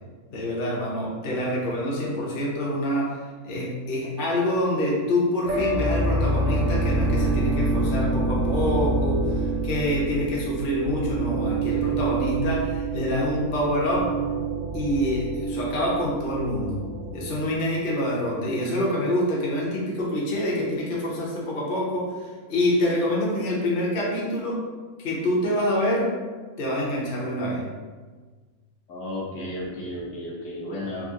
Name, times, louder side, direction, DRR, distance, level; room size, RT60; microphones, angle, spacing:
voice 1, 0.3-14.1 14.7-16.8 17.1-24.6 25.0-26.1 26.6-27.6, left 1 dB, 45° left, -5 dB, 0.7 m, -26 dB
sound 1, 5.5-17.4, right 2 dB, 75° right, 0.4 m, -26 dB
voice 2, 28.9-31.1, left 1 dB, 65° left, -4 dB, 1.1 m, -33 dB
3.7 x 2.0 x 3.6 m, 1.4 s
omnidirectional pair, 1.6 m